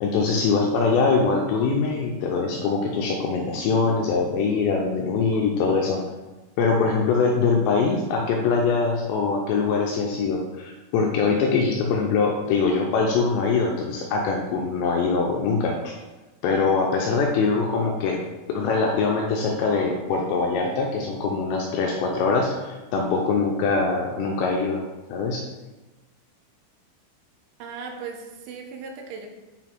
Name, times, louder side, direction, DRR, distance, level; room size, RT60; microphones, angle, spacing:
voice 1, 0.0-6.0 6.6-16.0 16.4-18.2 18.5-24.8 25.1-25.4, left 4 dB, 80° left, 0 dB, 2.6 m, -23 dB
voice 2, 27.6-29.3, right 5 dB, 85° right, 3 dB, 3.4 m, -37 dB
9.1 x 4.0 x 4.5 m, 1.1 s
omnidirectional pair, 5.7 m